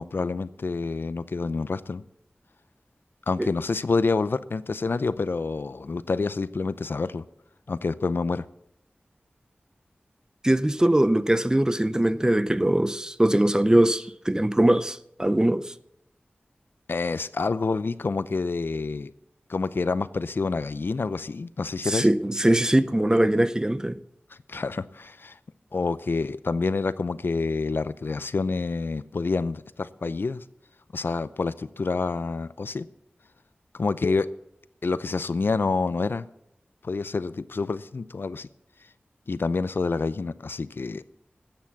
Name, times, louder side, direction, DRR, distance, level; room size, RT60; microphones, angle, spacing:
voice 1, 0.0-2.0 3.3-7.2 7.7-8.5 16.9-19.1 19.5-22.1 24.5-25.4 25.7-30.4 30.9-32.9 33.7-34.3 34.8-36.3 36.8-38.5 39.3-41.0, left 4 dB, 70° left, 0.5 m, -27 dB
voice 2, 10.4-15.7 21.8-24.0, right 1 dB, 20° right, 0.7 m, -21 dB
13.5 x 8.8 x 7.1 m
wide cardioid pair, 50°, 4 cm